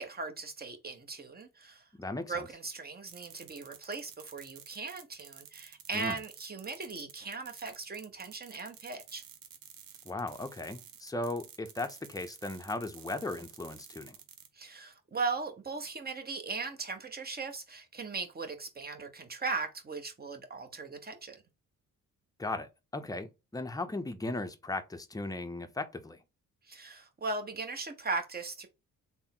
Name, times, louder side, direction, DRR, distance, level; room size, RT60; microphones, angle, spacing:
voice 1, 0.0-1.8 2.3-9.2 14.5-21.4 26.6-28.7, right 4 dB, 25° right, 0.9 m, -38 dB
voice 2, 2.0-2.5 5.9-6.2 10.0-14.2 22.4-26.2, left 2 dB, 10° left, 0.6 m, -37 dB
sound 1, 3.1-14.5, right 9 dB, 80° right, 0.7 m, -52 dB
3.5 x 2.1 x 4.2 m
cardioid pair, 70°, 34 cm